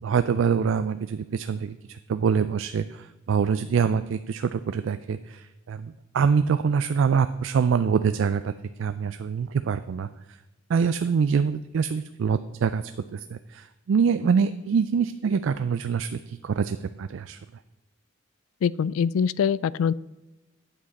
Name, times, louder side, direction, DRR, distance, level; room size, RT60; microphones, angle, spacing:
voice 1, 0.0-8.5 8.8-10.1 10.7-12.8 13.1-17.4, right 6 dB, 65° right, 11 dB, 0.3 m, -25 dB
voice 2, 18.6-19.9, left 7 dB, 90° left, 21 dB, 0.3 m, -23 dB
8.9 x 7.2 x 4.1 m, 1.1 s
head